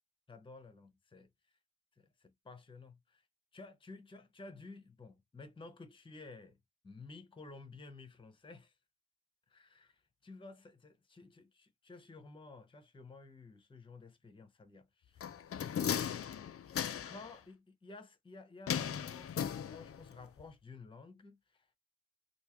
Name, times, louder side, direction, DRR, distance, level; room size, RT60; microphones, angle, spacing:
voice 1, 0.3-1.6 2.0-3.3 3.5-6.6 6.8-8.8 9.5-15.3 17.0-21.7, left 3 dB, 15° left, 0.7 m, -53 dB
sound 1, 15.2-17.3 18.7-20.1 20.4-20.5, left 8 dB, 45° left, 0.4 m, -37 dB
3.5 x 2.6 x 2.9 m
wide cardioid pair, 170°, 34 cm